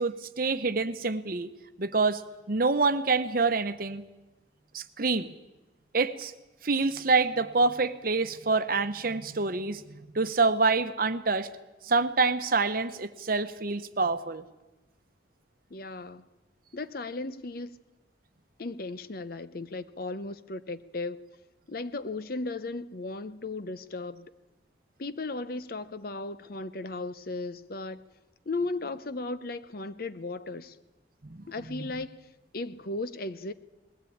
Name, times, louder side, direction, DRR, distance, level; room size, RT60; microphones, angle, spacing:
voice 1, 0.0-1.5 1.8-4.0 4.7-5.3 5.9-6.3 6.6-11.5 11.8-14.5 31.3-31.4 31.7-31.9, right 3 dB, 50° right, 10 dB, 0.9 m, -27 dB
voice 2, 15.7-16.3 16.7-17.7 18.6-21.2 21.7-24.3 25.0-28.0 28.5-30.7 31.5-32.2 32.5-33.5, left 3 dB, 50° left, 13 dB, 0.7 m, -36 dB
20.5 x 16.5 x 8.6 m, 1.1 s
head